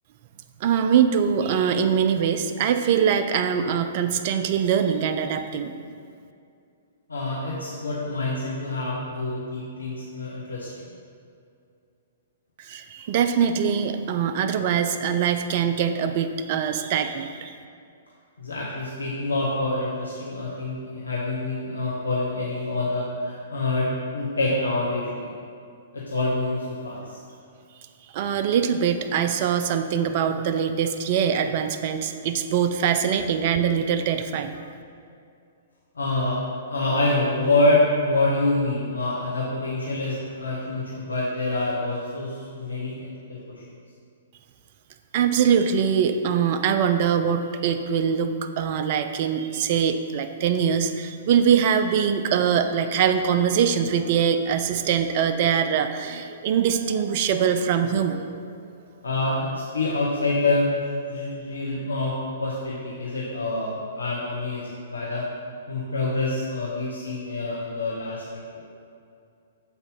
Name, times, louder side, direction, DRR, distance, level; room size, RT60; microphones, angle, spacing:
voice 1, 0.6-5.7 12.6-17.6 28.1-34.6 45.1-58.4, right 7 dB, 45° right, 8 dB, 0.4 m, -23 dB
voice 2, 7.1-10.9 18.4-23.9 24.1-25.3 25.9-27.2 35.9-36.4 36.7-43.6 59.0-65.2 65.7-68.6, left 2 dB, 75° left, -5 dB, 0.8 m, -26 dB
6.9 x 4.0 x 3.8 m, 2.4 s
figure-of-eight pair, 115°, 0 cm